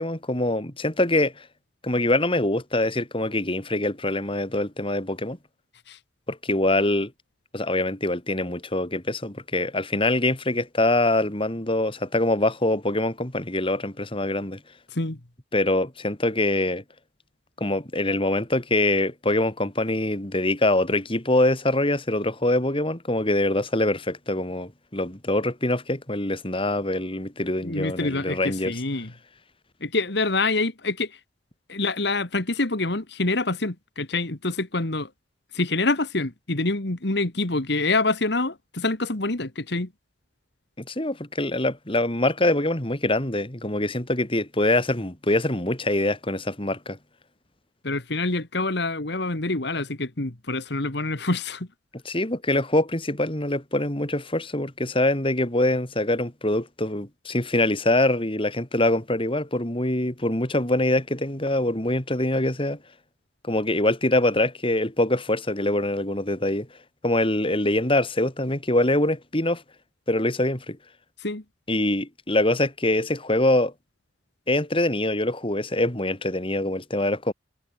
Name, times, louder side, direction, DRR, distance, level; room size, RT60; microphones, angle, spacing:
voice 1, 0.0-1.5 1.8-5.4 6.3-7.1 7.5-14.6 15.5-16.8 17.6-28.7 40.8-47.0 52.1-62.8 63.4-66.7 67.0-69.6 70.1-70.8 71.7-73.7 74.5-77.3, left 1 dB, 30° left, 3.6 m, -24 dB
voice 2, 27.6-29.1 29.8-31.2 31.7-35.1 35.5-39.9 47.8-51.7 71.2-71.4, left 2 dB, 60° left, 2.0 m, -26 dB
head